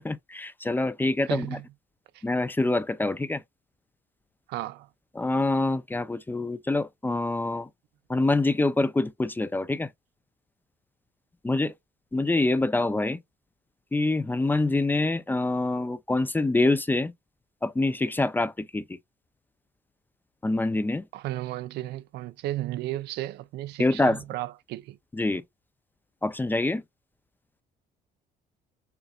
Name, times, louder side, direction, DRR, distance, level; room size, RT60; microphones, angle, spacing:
voice 1, 0.0-1.6 2.2-3.4 5.2-7.7 8.1-9.9 11.4-11.7 12.1-13.2 13.9-17.1 17.6-18.8 20.4-21.1 23.8-24.2 25.1-25.4 26.2-26.8, left 2 dB, 10° left, 0.4 m, -25 dB
voice 2, 1.3-1.6 2.1-2.2 4.5-4.9 21.1-25.0, right 15 dB, 80° right, 0.5 m, -34 dB
6.8 x 2.5 x 2.4 m
cardioid pair, 110°, 17 cm